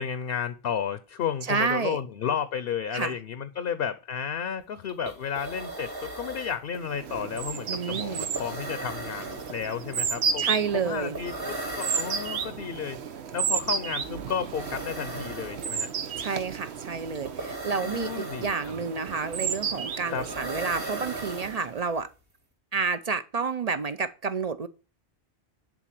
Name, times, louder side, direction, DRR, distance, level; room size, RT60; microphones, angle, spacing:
voice 1, 0.0-10.4 10.8-15.9 17.8-18.8 20.1-20.3, left 7 dB, 65° left, 0.9 m, -32 dB
voice 2, 1.5-2.0 2.9-3.2 7.7-8.3 10.4-11.2 16.2-22.1 22.7-24.7, right 5 dB, 45° right, 0.6 m, -30 dB
sound 1, 4.6-4.7 4.9-22.0, right 2 dB, 60° right, 2.6 m, -39 dB
sound 2, 6.8-21.8, right 6 dB, 80° right, 1.1 m, -33 dB
11.0 x 4.1 x 7.4 m
omnidirectional pair, 1.1 m